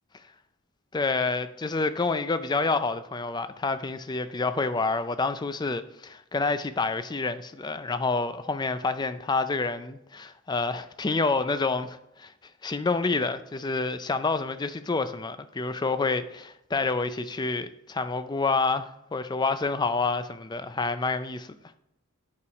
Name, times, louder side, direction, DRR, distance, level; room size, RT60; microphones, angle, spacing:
voice 1, 0.9-12.3 12.6-21.6, left 3 dB, 20° left, 0.4 m, -28 dB
8.5 x 4.8 x 5.1 m
head